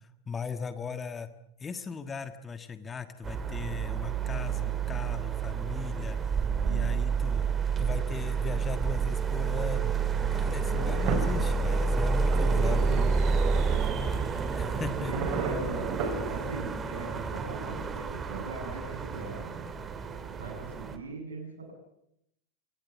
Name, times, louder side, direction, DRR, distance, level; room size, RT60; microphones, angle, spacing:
voice 1, 0.3-1.3 1.6-7.4 7.8-9.9 10.3-13.0 14.6-15.1, left 5 dB, 20° left, 10 dB, 1.5 m, -38 dB
sound 1, 3.2-21.0, right 5 dB, 20° right, 2.3 m, -29 dB
voice 2, 6.5-7.0 10.7-11.2 12.5-13.1 13.5-19.6 20.3-21.7, right 3 dB, 70° right, 4 dB, 7.7 m, -40 dB
sound 2, 10.8-16.4, right 5 dB, 40° right, 5.4 m, -36 dB
26.0 x 18.5 x 7.5 m, 0.77 s
figure-of-eight pair, 90°, 0 cm